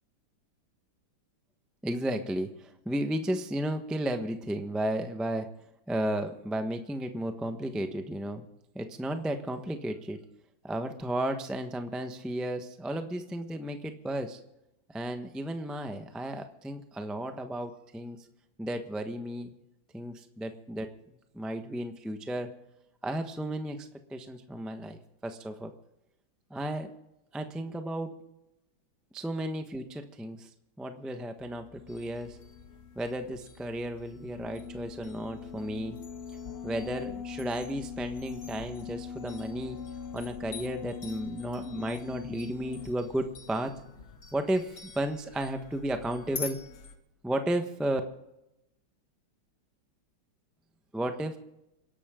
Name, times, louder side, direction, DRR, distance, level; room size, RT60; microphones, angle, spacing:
voice 1, 1.8-5.5 5.9-8.4 8.7-10.2 10.6-14.4 14.9-18.2 18.6-19.5 19.9-20.9 21.3-22.5 23.0-25.7 26.5-26.9 27.3-28.1 29.1-30.5 30.8-32.4 32.9-36.0 36.6-39.8 40.1-43.7 44.3-46.6 47.2-48.0 50.9-51.4, right 1 dB, ahead, 6 dB, 0.7 m, -33 dB
sound 1, 31.4-44.2, left 7 dB, 65° left, 0.5 m, -43 dB
sound 2, 31.9-47.0, left 5 dB, 50° left, 1.9 m, -48 dB
28.0 x 11.5 x 3.8 m, 0.90 s
omnidirectional pair, 2.2 m